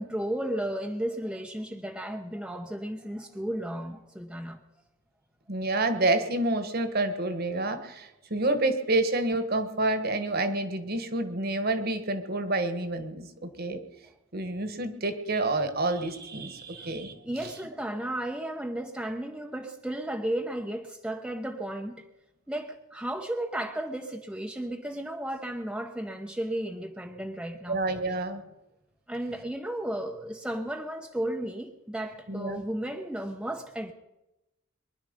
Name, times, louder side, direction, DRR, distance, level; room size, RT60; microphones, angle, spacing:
voice 1, 0.0-4.6 16.8-16.9 17.2-22.1 22.5-27.8 29.1-33.9, right 1 dB, 5° right, 3 dB, 0.8 m, -34 dB
voice 2, 5.5-13.8 14.3-17.1 17.4-17.5 27.7-28.4 32.3-32.6, right 2 dB, 45° right, 9 dB, 1.5 m, -28 dB
23.5 x 11.0 x 5.2 m, 0.96 s
head